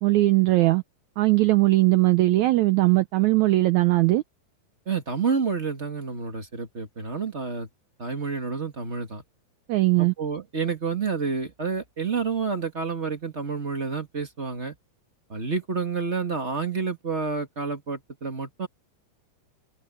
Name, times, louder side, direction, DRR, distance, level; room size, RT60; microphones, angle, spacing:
voice 1, 0.0-0.8 1.2-4.2 9.7-10.1, right 18 dB, 80° right, 1.7 m, -20 dB
voice 2, 4.8-7.7 8.0-9.2 10.0-14.7 15.3-18.7, right 5 dB, 30° right, 1.4 m, -29 dB
omnidirectional pair, 4.0 m